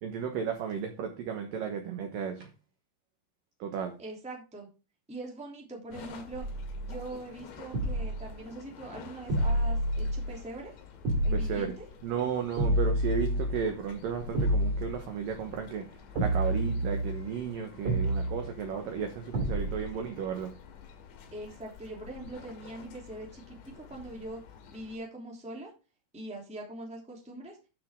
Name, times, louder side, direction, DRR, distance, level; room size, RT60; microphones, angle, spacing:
voice 1, 0.0-2.5 3.6-3.9 11.3-11.8 12.0-15.9 16.2-20.5, right 7 dB, 75° right, 2.0 m, -34 dB
voice 2, 4.0-4.7 5.1-6.4 6.8-10.8 11.2-11.8 19.9-20.2 21.3-24.4 24.7-25.7 26.1-27.6, right 2 dB, ahead, 1.7 m, -42 dB
sound 1, 5.9-25.0, left 6 dB, 80° left, 4.5 m, -50 dB
sound 2, 6.3-7.1 7.7-8.3 9.3-10.3 11.0-11.6 12.6-13.7 14.3-15.0 16.2-17.3 17.9-18.5 19.3-20.0, right 1 dB, 40° right, 3.1 m, -29 dB
12.5 x 6.2 x 3.7 m
omnidirectional pair, 5.7 m